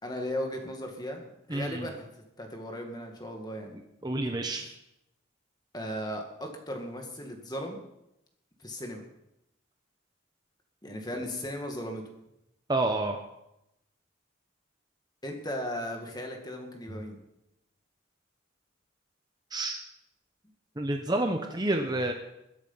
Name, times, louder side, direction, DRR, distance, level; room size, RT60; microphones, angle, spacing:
voice 1, 0.0-1.2 1.5-2.1 2.4-3.7 5.7-7.8 8.6-9.1 10.8-12.0 15.2-17.2, equal, 20° left, 3 dB, 2.0 m, -36 dB
voice 2, 1.5-1.9 4.0-4.7 12.7-13.2 16.9-17.0 19.5-19.8 20.8-22.1, right 2 dB, 20° right, 4 dB, 0.9 m, -29 dB
21.5 x 8.1 x 5.7 m, 0.86 s
head